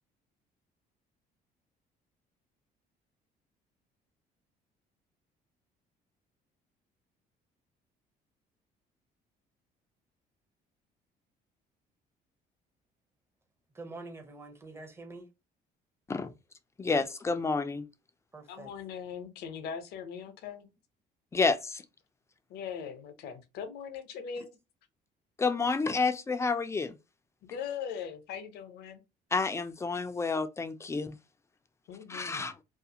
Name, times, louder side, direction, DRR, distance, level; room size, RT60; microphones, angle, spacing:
voice 1, 13.7-15.3 18.3-18.7 24.3-24.4, right 2 dB, 15° right, 0.7 m, -46 dB
voice 2, 16.8-17.9 21.3-21.8 25.4-27.0 29.3-31.2 32.1-32.5, left 4 dB, 15° left, 0.3 m, -29 dB
voice 3, 18.5-20.7 22.5-24.5 27.5-29.0 31.9-32.5, left 7 dB, 75° left, 0.6 m, -40 dB
2.4 x 2.4 x 2.7 m
cardioid pair, 110°, 17 cm